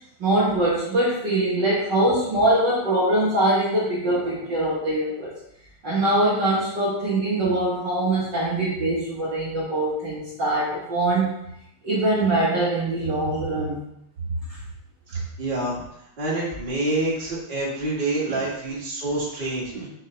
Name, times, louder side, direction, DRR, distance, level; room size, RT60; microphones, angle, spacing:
voice 1, 0.2-5.3 5.8-11.4 11.8-13.8 14.5-14.6 18.3-18.5 19.7-19.9, right 1 dB, 85° right, -8 dB, 1.0 m, -23 dB
voice 2, 15.4-15.8 16.2-19.6, right 2 dB, 30° right, -6 dB, 0.9 m, -26 dB
6.7 x 5.6 x 3.3 m, 0.79 s
omnidirectional pair, 4.3 m